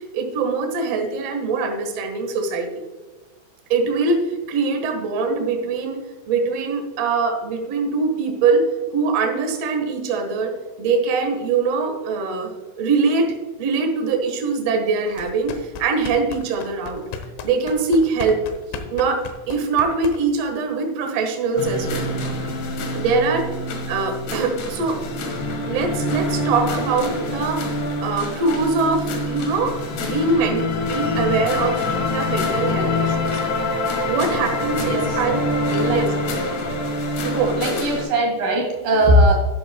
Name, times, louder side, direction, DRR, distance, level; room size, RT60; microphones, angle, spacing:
voice 1, 0.1-2.7 3.7-6.0 6.3-12.5 12.8-13.3 13.6-17.0 17.4-18.4 18.9-19.2 19.5-22.1 22.9-23.5 23.9-25.0 25.7-27.6 28.0-29.7 30.0-33.4 34.1-35.4 35.8-36.1 37.2-37.8, right 4 dB, 80° right, 4 dB, 1.4 m, -22 dB
sound 1, 15.1-20.5, left 6 dB, 80° left, 3.3 m, -35 dB
sound 2, 21.6-38.1, left 2 dB, 60° left, 2.2 m, -25 dB
voice 2, 34.8-35.2 35.7-36.0 37.6-39.3, equal, 55° right, 1 dB, 3.3 m, -19 dB
11.5 x 11.0 x 2.3 m, 1.3 s
omnidirectional pair, 5.4 m